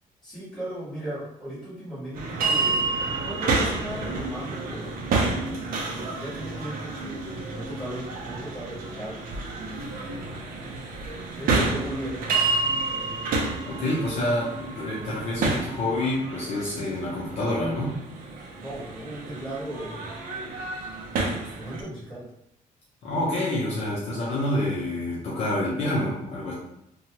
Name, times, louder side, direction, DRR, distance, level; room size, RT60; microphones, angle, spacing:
voice 1, 0.2-2.8 3.2-5.0 5.9-9.2 9.6-10.5 11.4-12.2 18.6-20.2 21.1-22.2, right 1 dB, 5° left, -12 dB, 1.5 m, -37 dB
sound 1, 2.1-21.8, right 3 dB, 70° right, 0.6 m, -30 dB
voice 2, 13.6-18.0 23.0-26.5, left 1 dB, 45° left, -7 dB, 0.7 m, -27 dB
2.8 x 2.3 x 2.9 m, 0.79 s
cardioid pair, 180°, 15 cm